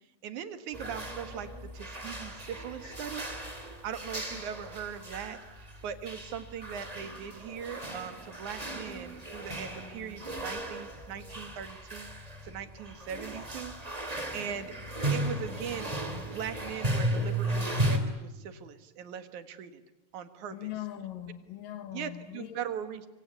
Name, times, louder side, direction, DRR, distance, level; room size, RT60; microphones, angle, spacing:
voice 1, 0.2-3.4 3.8-14.7 15.1-16.0 16.3-19.8 20.1-20.6 21.9-23.1, right 8 dB, 65° right, 3.0 m, -40 dB
sound 1, 0.7-18.0, right 1 dB, 10° right, 2.6 m, -35 dB
voice 2, 20.5-22.8, left 12 dB, 75° left, 3.1 m, -41 dB
25.5 x 25.5 x 8.4 m
omnidirectional pair, 3.9 m